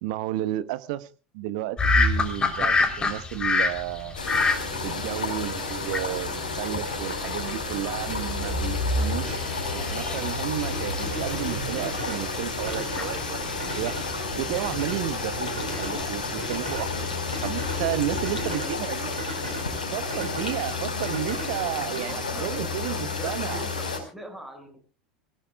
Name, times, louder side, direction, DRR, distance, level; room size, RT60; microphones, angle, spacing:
voice 1, 0.0-1.1 1.3-4.2 4.8-9.4 9.7-13.9 14.4-19.1 19.9-23.6, right 15 dB, 55° right, 13 dB, 1.2 m, -32 dB
sound 1, 1.8-18.5, left 3 dB, 20° left, 3.6 m, -30 dB
sound 2, 2.5-22.0, right 2 dB, 85° right, 3.6 m, -39 dB
sound 3, 4.1-24.0, left 4 dB, 75° left, 4.7 m, -31 dB
voice 2, 18.5-19.3 22.0-24.8, right 1 dB, 5° right, 4 dB, 6.5 m, -42 dB
26.0 x 17.0 x 2.4 m, 0.35 s
figure-of-eight pair, 75°, 4 cm